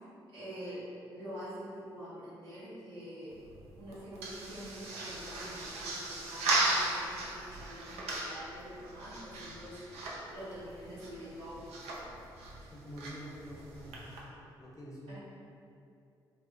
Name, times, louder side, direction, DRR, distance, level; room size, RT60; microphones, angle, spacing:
voice 1, 0.3-3.3 3.8-9.7 10.3-11.8 15.1-15.2, equal, 90° right, -15 dB, 0.9 m, -46 dB
sound 1, 3.3-14.2, right 2 dB, 70° right, 0.5 m, -37 dB
voice 2, 12.6-14.2 14.6-15.2, equal, 30° left, -4 dB, 0.7 m, -47 dB
2.4 x 2.1 x 3.5 m, 2.6 s
hypercardioid pair, 45°, 11 cm